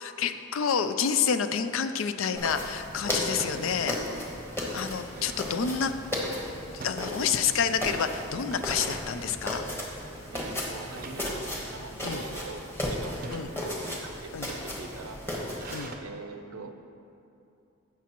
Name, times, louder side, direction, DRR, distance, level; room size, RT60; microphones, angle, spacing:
voice 1, 0.0-3.9 4.7-5.9 6.7-9.6 12.0-12.2 13.3-13.5 14.3-14.5 15.7-16.0, left 7 dB, 70° left, 10 dB, 0.4 m, -28 dB
sound 1, 1.9-2.0 3.3-3.6 4.1-4.2 4.5-5.5 6.8-7.6 7.9-8.2 8.6-9.1 9.7-10.0 10.9-11.3 12.0-12.5 13.1-13.5 14.3-16.0, right 3 dB, 40° right, 0.5 m, -45 dB
sound 2, 2.3-15.9, left 1 dB, 10° left, 1.1 m, -35 dB
voice 2, 3.0-3.9 5.1-6.0 7.0-7.1 8.5-8.7 10.3-15.2 16.0-16.7, right 4 dB, 85° right, 7 dB, 0.6 m, -44 dB
15.5 x 6.1 x 3.0 m, 2.6 s
head